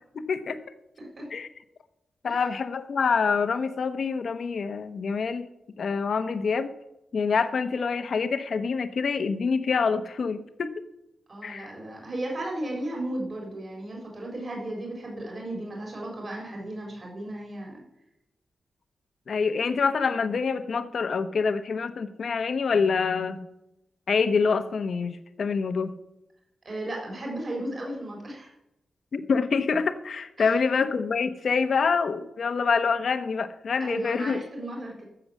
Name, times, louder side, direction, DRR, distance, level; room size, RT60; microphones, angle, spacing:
voice 1, 0.1-0.6 1.3-1.5 2.2-5.5 5.8-6.7 7.1-10.7 11.4-11.7 19.3-23.5 24.1-26.0 29.1-34.4, left 5 dB, 60° left, 10 dB, 1.0 m, -26 dB
voice 2, 11.3-17.8 26.6-28.5 30.4-30.5 33.8-35.0, right 1 dB, 40° right, -1 dB, 4.3 m, -35 dB
13.5 x 7.0 x 7.2 m, 0.87 s
wide cardioid pair, 135°, 0 cm